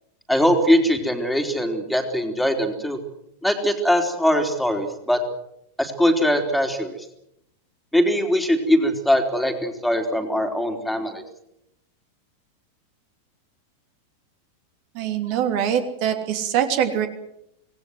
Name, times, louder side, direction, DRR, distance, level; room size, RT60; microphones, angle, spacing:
voice 1, 0.3-3.0 3.4-5.2 5.8-6.9 7.9-11.2, equal, ahead, 4 dB, 3.5 m, -21 dB
voice 2, 14.9-17.1, right 9 dB, 45° right, 6 dB, 3.0 m, -23 dB
26.5 x 19.0 x 7.9 m, 0.80 s
figure-of-eight pair, 90°, 0 cm